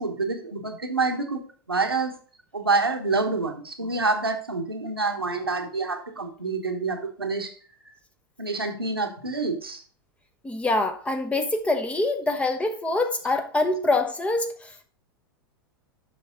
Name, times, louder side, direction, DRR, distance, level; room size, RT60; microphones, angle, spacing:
voice 1, 0.0-2.2 2.5-7.6 8.4-9.8, right 3 dB, 85° right, 1.3 m, -27 dB
voice 2, 10.4-14.8, left 2 dB, 10° left, 1.0 m, -25 dB
7.8 x 5.8 x 3.7 m
figure-of-eight pair, 90°, 12 cm